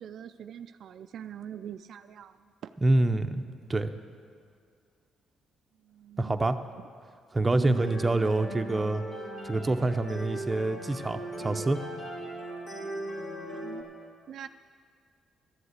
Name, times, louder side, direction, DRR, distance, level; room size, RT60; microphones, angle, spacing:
voice 1, 0.0-2.7 5.8-6.4 7.6-7.9 13.5-13.8 14.3-14.5, right 9 dB, 70° right, 9 dB, 0.3 m, -43 dB
voice 2, 2.8-3.4 3.7-3.9 6.2-6.6 7.3-9.0 9.4-11.8, right 2 dB, 20° right, 7 dB, 0.7 m, -26 dB
sound 1, 7.7-13.8, right 1 dB, 60° left, 3.1 m, -39 dB
12.5 x 7.7 x 8.1 m, 2.2 s
cardioid pair, 90°, 0 cm